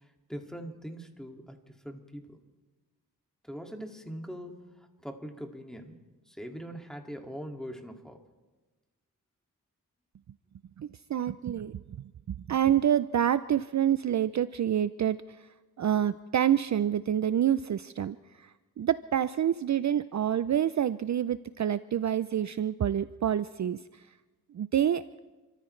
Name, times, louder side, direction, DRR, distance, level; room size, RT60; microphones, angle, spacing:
voice 1, 0.3-1.6 1.8-2.4 3.4-6.0 6.3-8.2, equal, ahead, 3 dB, 2.2 m, -42 dB
voice 2, 10.8-15.5 15.8-24.1 24.5-25.0, right 10 dB, 50° right, 14 dB, 0.5 m, -28 dB
29.5 x 14.0 x 3.2 m, 1.2 s
cardioid pair, 60°, 36 cm